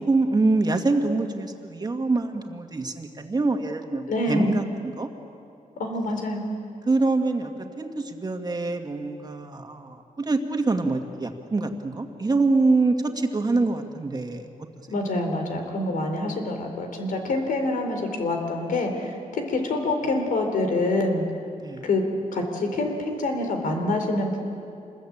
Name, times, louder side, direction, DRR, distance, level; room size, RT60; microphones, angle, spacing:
voice 1, 0.1-5.1 6.9-14.5 14.8-14.9 21.6-21.8, right 3 dB, 30° right, 4 dB, 2.0 m, -25 dB
voice 2, 4.1-4.6 5.8-6.4 14.9-21.2 21.8-22.0 22.3-24.4, left 2 dB, 90° left, 4 dB, 3.9 m, -26 dB
27.0 x 21.0 x 8.8 m, 2.5 s
wide cardioid pair, 115°, 14 cm